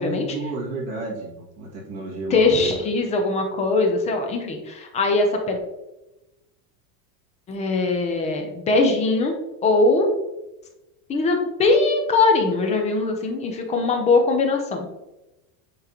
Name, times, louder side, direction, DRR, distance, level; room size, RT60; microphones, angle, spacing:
voice 1, 0.0-2.7, right 2 dB, 35° right, -4 dB, 2.1 m, -32 dB
voice 2, 2.3-5.6 7.5-9.3 9.6-10.1 11.1-14.9, left 3 dB, 15° left, 3 dB, 0.4 m, -21 dB
8.9 x 3.7 x 2.9 m, 0.98 s
supercardioid pair, 165°, 46 cm